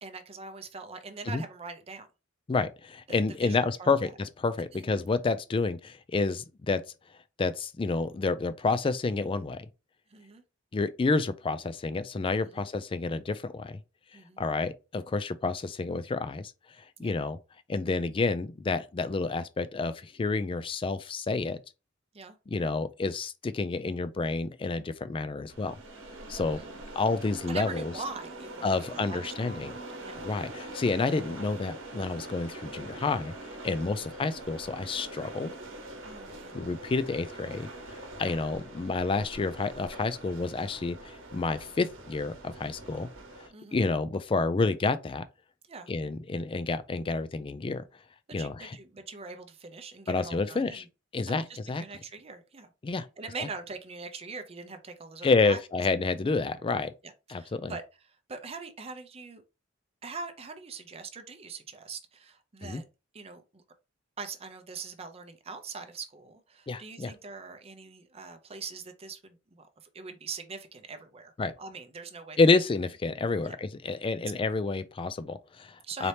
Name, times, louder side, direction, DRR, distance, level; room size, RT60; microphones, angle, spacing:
voice 1, 0.0-2.1 3.1-4.1 4.7-4.9 10.1-10.4 12.4-12.6 14.1-14.4 17.0-17.1 22.1-22.3 26.5-26.8 27.5-30.3 34.0-34.1 36.0-36.6 43.5-43.8 45.7-45.9 48.4-50.9 51.3-51.4 51.8-52.7 53.2-55.6 57.3-57.8 58.3-59.4 60.0-62.8 63.1-63.6 64.2-72.4 73.4-73.6 75.8-76.1, right 4 dB, 30° right, 0.6 m, -42 dB
voice 2, 2.5-6.8 7.4-9.7 10.7-13.8 14.4-16.5 17.0-17.4 17.7-21.6 22.5-25.8 26.3-26.6 27.0-27.9 28.6-29.7 30.2-33.3 33.6-35.5 36.5-37.7 38.2-43.1 43.7-45.2 45.9-47.8 48.3-48.8 50.1-50.8 51.1-51.8 52.8-53.1 53.4-53.5 55.2-56.9 57.3-57.8 62.6-62.8 66.7-67.1 71.4-71.5 72.4-76.1, left 3 dB, 25° left, 0.3 m, -29 dB
sound 1, 25.5-43.5, right 2 dB, 70° right, 0.9 m, -44 dB
4.2 x 2.8 x 3.2 m
head